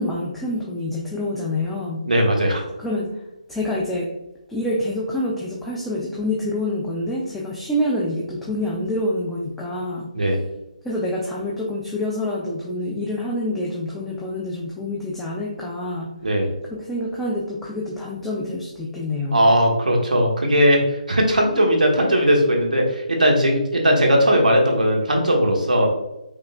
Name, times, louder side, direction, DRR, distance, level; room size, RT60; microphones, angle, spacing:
voice 1, 0.0-2.0 2.8-3.2 3.5-4.1 4.5-10.1 10.8-16.1 16.7-19.5, left 1 dB, 5° left, -5 dB, 0.4 m, -27 dB
voice 2, 2.0-2.6 10.1-10.4 16.2-16.5 19.3-20.8 21.1-25.9, equal, 85° right, 1 dB, 1.3 m, -18 dB
5.0 x 3.6 x 2.3 m, 0.92 s
figure-of-eight pair, 155°, 4 cm